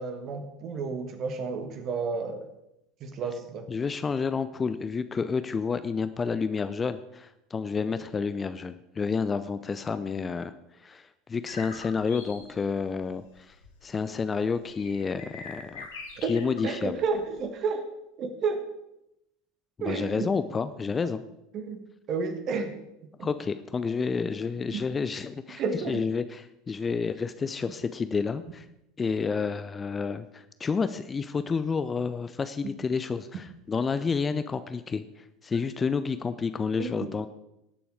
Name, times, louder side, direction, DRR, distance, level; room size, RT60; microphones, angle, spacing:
voice 1, 0.0-2.5 3.0-3.7 16.2-16.3 16.6-17.8 18.2-18.7 19.8-20.3 21.0-21.1 21.5-22.7 24.7-24.8 25.6-26.0 32.6-32.7 36.8-37.1, right 5 dB, 40° right, 8 dB, 1.6 m, -31 dB
voice 2, 3.7-13.6 13.8-15.9 16.3-17.0 19.8-21.2 23.2-25.6 25.9-28.7 29.0-37.3, left 5 dB, 20° left, 12 dB, 0.5 m, -30 dB
sound 1, 11.5-17.5, left 4 dB, 65° left, 2.1 m, -45 dB
18.5 x 7.0 x 4.9 m, 0.86 s
figure-of-eight pair, 75°, 0 cm